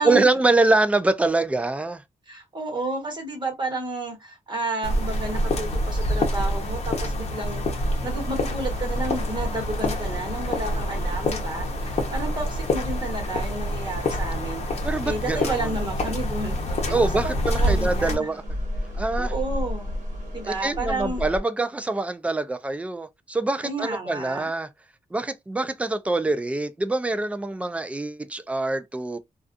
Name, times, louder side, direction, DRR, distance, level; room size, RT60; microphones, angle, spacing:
voice 1, 0.0-2.0 14.8-15.7 16.9-18.4 19.0-19.3 20.4-24.7 25.1-29.2, right 2 dB, 10° right, 0.3 m, -24 dB
voice 2, 2.3-18.3 19.2-19.9 20.3-21.3 23.6-24.5, right 2 dB, 35° right, 1.3 m, -31 dB
sound 1, 4.8-18.1, left 1 dB, 50° left, 0.8 m, -26 dB
sound 2, 8.1-21.4, left 1 dB, 60° right, 1.1 m, -36 dB
2.4 x 2.3 x 2.5 m
wide cardioid pair, 120°, 14 cm